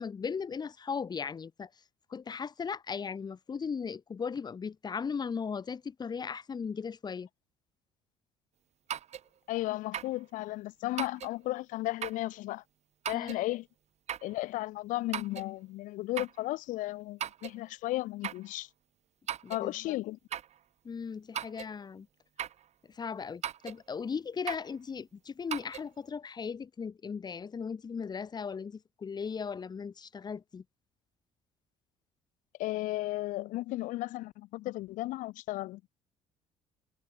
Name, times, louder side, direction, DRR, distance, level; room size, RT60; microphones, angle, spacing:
voice 1, 0.0-1.7 2.1-7.3 13.1-13.4 19.4-20.0 20.8-22.1 22.9-30.6, left 6 dB, 30° left, 0.8 m, -37 dB
sound 1, 8.9-9.3 9.9-10.2 11.0-11.4 12.0-12.3 13.0-13.4 14.1-14.3 15.1-15.5 16.2-16.4 17.2-17.6 18.2-18.5 19.3-19.7 20.3-20.6 21.3-21.7 22.4-22.6 23.4-23.8 24.5-24.7 25.5-25.9, right 9 dB, 50° right, 1.8 m, -38 dB
voice 2, 9.5-12.6 13.1-13.7 14.2-18.7 19.5-20.2 32.6-35.8, left 17 dB, 65° left, 0.9 m, -34 dB
hypercardioid pair, 60°, 14 cm